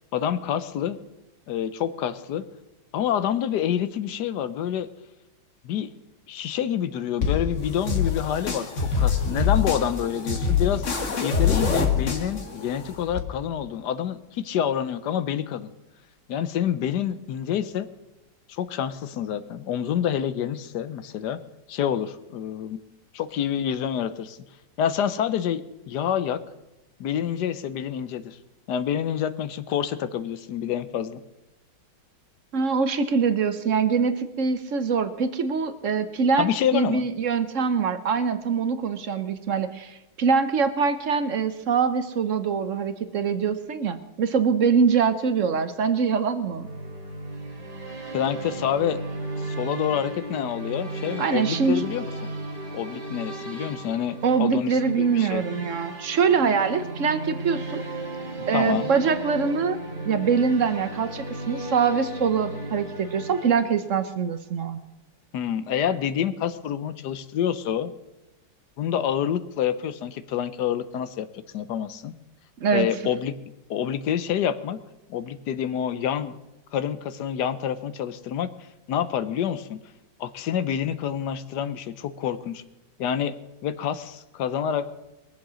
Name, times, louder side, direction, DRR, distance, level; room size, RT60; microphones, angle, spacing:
voice 1, 0.1-1.0 1.5-2.4 2.9-4.9 5.6-5.9 6.3-10.8 11.2-15.7 16.3-17.9 18.5-21.4 21.7-22.8 23.1-24.4 24.8-26.4 27.0-28.4 28.7-31.2 36.4-37.1 48.1-49.0 49.4-52.3 52.7-55.4 58.4-58.9 65.3-67.9 68.8-72.1 72.7-73.3 73.7-74.8 75.1-76.4 76.7-78.5 78.9-79.8 80.2-82.6 83.0-83.3 83.6-84.9, left 9 dB, 70° left, 14 dB, 1.3 m, -27 dB
sound 1, 7.2-13.2, left 6 dB, 45° left, 1.7 m, -25 dB
voice 2, 32.5-46.7 51.2-51.8 54.2-57.8 58.5-59.8 60.0-64.8 72.6-72.9, right 6 dB, 55° right, 11 dB, 1.0 m, -24 dB
sound 2, 46.4-64.1, right 2 dB, 30° right, 2.2 m, -35 dB
22.5 x 7.6 x 6.2 m, 1.0 s
omnidirectional pair, 2.0 m